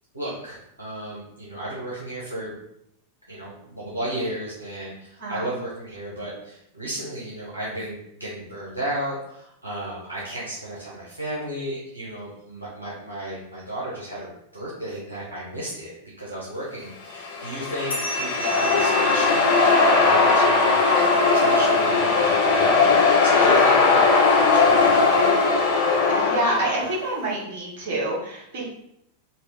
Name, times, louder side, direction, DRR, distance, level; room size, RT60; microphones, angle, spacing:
voice 1, 0.1-2.6 3.3-19.5 19.9-21.1 21.3-25.4, right 1 dB, 80° right, -7 dB, 0.7 m, -34 dB
sound 1, 17.2-27.0, left 4 dB, 45° left, 0.6 m, -19 dB
sound 2, 17.9-22.8, right 4 dB, 70° left, 0.8 m, -34 dB
voice 2, 26.1-28.6, right 2 dB, 50° right, -3 dB, 1.1 m, -27 dB
2.7 x 2.3 x 3.4 m, 0.78 s
figure-of-eight pair, 90°, 0 cm